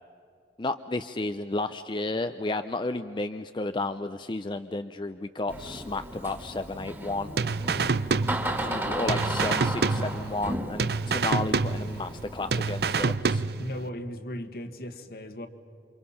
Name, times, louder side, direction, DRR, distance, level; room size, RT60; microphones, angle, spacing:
voice 1, 0.6-7.3 8.6-13.4, left 2 dB, 25° left, 9 dB, 0.5 m, -32 dB
Door, 5.5-13.1, right 1 dB, 15° right, 1.9 m, -35 dB
sound 1, 7.4-8.8 9.1-10.5 10.8-12.2 12.5-13.8, right 4 dB, 60° right, 0.6 m, -27 dB
voice 2, 7.7-8.1 13.6-15.5, equal, 60° left, 8 dB, 1.6 m, -37 dB
28.5 x 26.0 x 5.7 m, 2.5 s
head